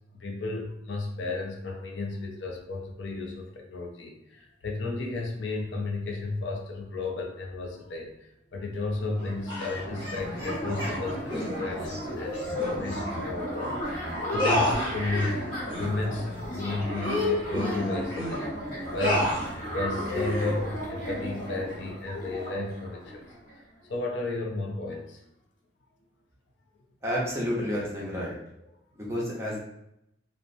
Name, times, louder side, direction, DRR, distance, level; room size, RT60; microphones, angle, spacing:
voice 1, 0.1-18.5 18.9-19.4 19.7-23.3 23.9-25.2, left 2 dB, 70° left, 1 dB, 0.4 m, -33 dB
sound 1, 8.7-8.8 9.0-23.6, equal, 55° left, 1.0 m, -34 dB
sound 2, 9.5-9.8 10.6-10.9 11.3-11.5 12.6-12.7 13.1-13.3 13.6-13.7 14.4-15.3 15.7-15.9 16.3-16.4 16.9-18.4 19.0-19.5 20.1-20.5, left 1 dB, 25° left, 0.8 m, -29 dB
voice 2, 27.0-28.4 29.0-29.6, equal, 15° right, -5 dB, 0.7 m, -30 dB
2.8 x 2.0 x 2.5 m, 0.80 s
head